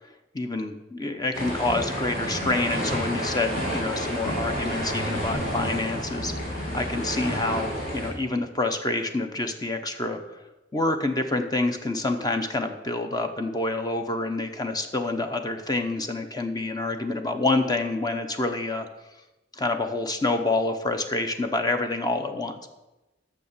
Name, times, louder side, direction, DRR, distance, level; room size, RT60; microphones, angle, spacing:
voice 1, 0.3-10.4 10.7-18.9 19.5-22.7, left 2 dB, 20° left, 7 dB, 0.7 m, -27 dB
sound 1, 1.3-8.1, equal, 50° left, 3.0 m, -30 dB
8.3 x 6.5 x 6.8 m, 1.0 s
head